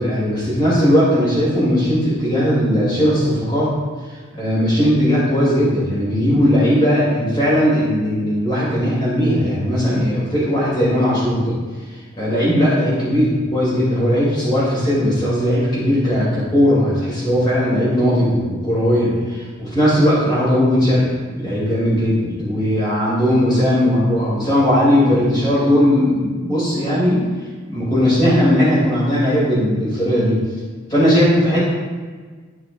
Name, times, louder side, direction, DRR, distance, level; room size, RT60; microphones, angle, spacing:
voice 1, 0.0-3.7 4.1-11.6 11.9-27.2 27.7-30.4 30.9-31.6, equal, 20° left, -9 dB, 2.3 m, -18 dB
14.0 x 4.8 x 2.3 m, 1.5 s
head